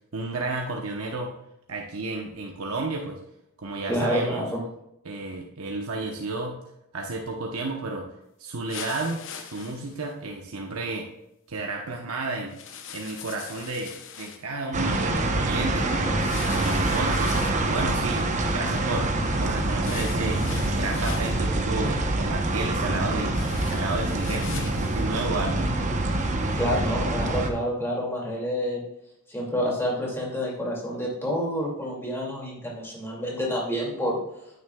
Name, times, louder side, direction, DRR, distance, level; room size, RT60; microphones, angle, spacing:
voice 1, 0.1-1.3 1.7-3.2 3.6-4.5 5.0-6.5 6.9-8.1 8.4-11.1 11.5-12.6 12.9-16.2 16.5-18.3 18.5-20.4 20.7-23.4 23.7-25.7, right 2 dB, 75° right, 1 dB, 0.9 m, -32 dB
voice 2, 3.9-4.6 26.5-28.8 29.3-34.2, equal, 10° left, -3 dB, 2.3 m, -28 dB
sound 1, 8.7-10.0 12.5-14.4 16.2-17.7 19.8-21.4 23.3-25.0, left 7 dB, 60° left, 0.8 m, -40 dB
sound 2, 14.7-27.5, right 2 dB, 35° right, 0.9 m, -26 dB
9.4 x 9.4 x 2.3 m, 0.82 s
head